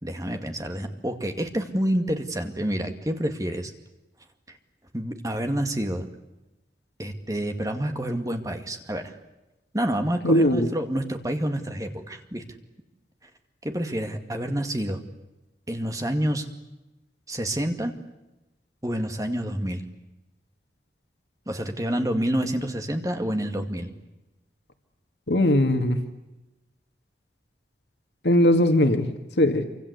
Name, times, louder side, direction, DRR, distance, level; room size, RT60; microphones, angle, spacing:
voice 1, 0.0-3.7 4.5-4.6 4.9-6.0 7.0-9.2 9.7-12.4 13.2-13.3 13.6-15.0 15.7-16.5 17.3-17.9 18.8-19.8 21.5-23.9, right 1 dB, 20° right, 6 dB, 2.2 m, -28 dB
voice 2, 10.2-10.7 25.3-26.0 28.2-29.1 29.4-29.6, left 1 dB, 75° left, 6 dB, 2.2 m, -19 dB
27.0 x 25.0 x 8.2 m, 0.99 s
head